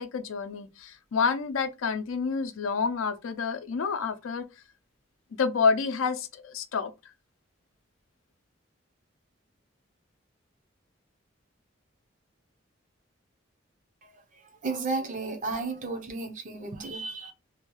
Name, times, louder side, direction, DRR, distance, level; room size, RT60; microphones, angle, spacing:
voice 1, 0.0-4.5 5.4-6.9, left 5 dB, 90° left, 0.4 m, -28 dB
voice 2, 14.6-17.3, right 3 dB, 40° right, 0.6 m, -33 dB
2.8 x 2.3 x 3.0 m
head